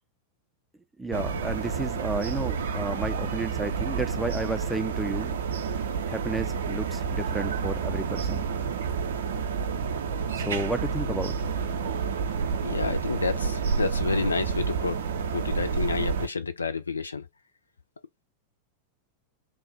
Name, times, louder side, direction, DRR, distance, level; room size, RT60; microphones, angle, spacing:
voice 1, 1.0-5.3 6.1-8.5 10.3-11.4, right 2 dB, 5° right, 0.6 m, -32 dB
sound 1, 1.1-16.3, right 6 dB, 65° right, 0.6 m, -29 dB
voice 2, 12.6-15.0 15.3-17.2, left 4 dB, 75° left, 0.5 m, -29 dB
3.5 x 2.4 x 4.0 m
figure-of-eight pair, 90°, 0 cm